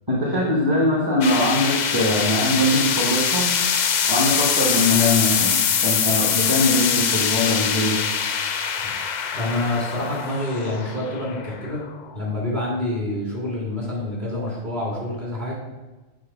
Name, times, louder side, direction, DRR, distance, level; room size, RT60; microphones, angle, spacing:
voice 1, 0.1-3.5 4.1-8.0, left 1 dB, 20° right, -4 dB, 1.2 m, -22 dB
sound 1, 1.2-12.3, left 7 dB, 55° left, 0.5 m, -23 dB
voice 2, 9.3-11.8 12.1-15.5, left 1 dB, 40° right, -4 dB, 2.6 m, -27 dB
7.6 x 4.0 x 5.9 m, 1.2 s
omnidirectional pair, 1.1 m